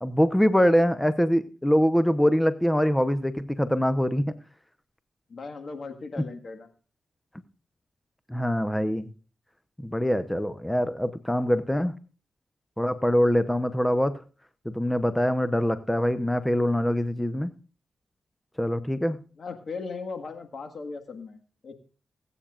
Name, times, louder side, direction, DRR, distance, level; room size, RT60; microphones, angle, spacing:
voice 1, 0.0-4.3 8.3-9.1 9.8-12.0 12.8-14.1 14.6-17.5 18.6-19.2, equal, 10° left, 11 dB, 0.8 m, -24 dB
voice 2, 5.3-6.7 19.4-21.8, left 4 dB, 60° left, 6 dB, 1.7 m, -38 dB
19.5 x 8.8 x 2.5 m, 0.37 s
cardioid pair, 50°, 0 cm